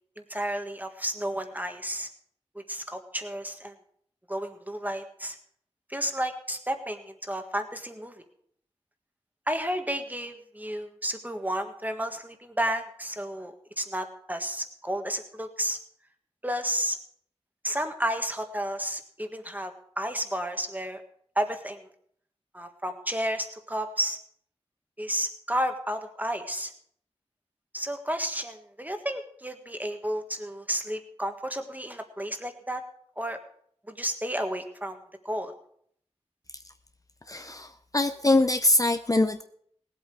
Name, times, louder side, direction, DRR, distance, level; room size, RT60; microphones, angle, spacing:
voice 1, 0.3-2.1 2.5-3.7 4.3-5.4 5.9-8.2 9.5-15.8 16.4-17.0 17.6-21.0 21.3-21.9 22.5-24.2 25.0-26.7 27.7-32.8 33.2-33.4 33.9-35.0 35.2-35.5, equal, 15° right, 6 dB, 1.6 m, -32 dB
voice 2, 37.3-39.4, left 2 dB, 30° left, 9 dB, 0.6 m, -23 dB
18.0 x 8.2 x 4.7 m, 0.66 s
wide cardioid pair, 40°, 11 cm